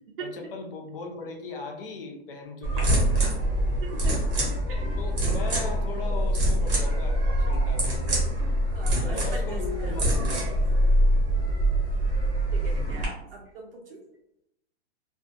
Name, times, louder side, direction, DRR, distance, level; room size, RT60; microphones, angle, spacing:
voice 1, 0.2-3.3 5.0-8.2 9.0-10.6, left 3 dB, 55° left, 2 dB, 0.6 m, -38 dB
sound 1, 2.6-13.0, right 1 dB, 25° right, 0.7 m, -24 dB
voice 2, 3.8-4.1 4.7-4.9 8.7-10.6 12.5-14.0, right 3 dB, 55° right, 1 dB, 0.4 m, -41 dB
2.3 x 2.3 x 2.5 m, 0.79 s
hypercardioid pair, 175°, 34 cm